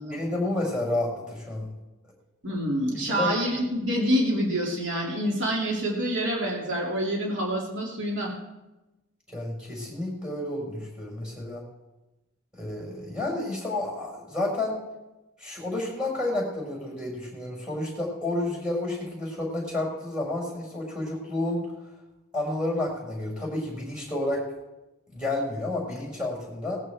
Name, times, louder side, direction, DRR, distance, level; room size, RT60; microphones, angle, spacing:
voice 1, 0.1-1.7 3.1-3.3 9.3-11.6 12.5-14.8 15.4-21.6 22.3-24.4 25.1-26.8, left 2 dB, 5° right, -2 dB, 5.1 m, -30 dB
voice 2, 2.4-8.3, equal, 70° right, -2 dB, 2.6 m, -27 dB
18.5 x 14.0 x 3.5 m, 1.0 s
head